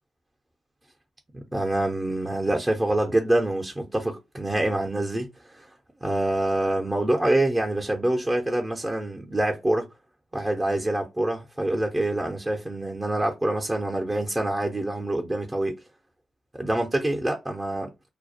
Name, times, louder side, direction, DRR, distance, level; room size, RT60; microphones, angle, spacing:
voice 1, 1.3-5.3 5.6-5.7 6.0-9.9 10.3-15.8 16.5-17.9, right 1 dB, 20° right, 0.6 m, -26 dB
2.2 x 2.0 x 2.7 m
hypercardioid pair, 40°, 0 cm